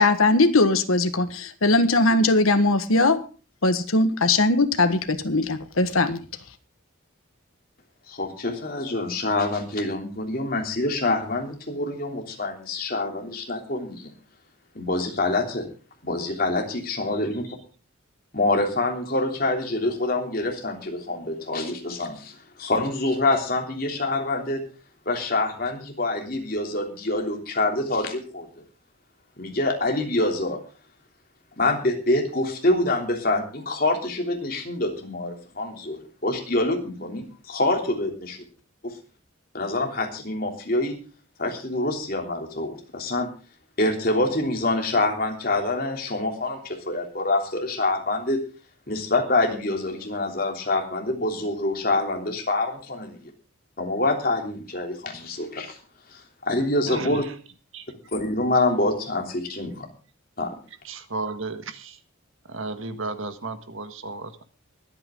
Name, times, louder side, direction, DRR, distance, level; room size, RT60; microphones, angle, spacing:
voice 1, 0.0-3.2 3.6-6.2, left 2 dB, 90° left, 9 dB, 1.5 m, -20 dB
voice 2, 8.1-14.1 14.7-15.7 16.0-17.5 18.3-24.6 25.0-28.5 29.4-30.6 31.6-38.4 38.8-38.9 39.5-40.9 41.4-43.3 43.8-48.4 48.9-53.1 53.8-55.8 56.1-57.2 58.1-59.8 60.4-60.5, left 2 dB, 45° left, 2 dB, 3.2 m, -26 dB
voice 3, 56.9-57.2 57.7-57.8 60.8-62.0 62.5-64.4, right 3 dB, 75° right, 9 dB, 1.6 m, -33 dB
23.5 x 9.0 x 3.8 m, 0.36 s
head